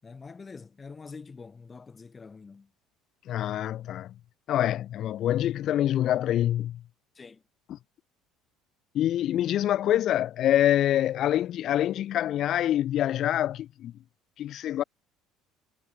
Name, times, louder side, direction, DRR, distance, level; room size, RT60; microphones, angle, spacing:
voice 1, 0.0-2.7 7.1-7.4, left 4 dB, 30° left, 6.3 m, -45 dB
voice 2, 3.3-4.1 4.5-6.8 7.7-7.8 8.9-13.9 14.4-14.8, left 12 dB, 55° left, 1.2 m, -26 dB
hypercardioid pair, 70°, 0 cm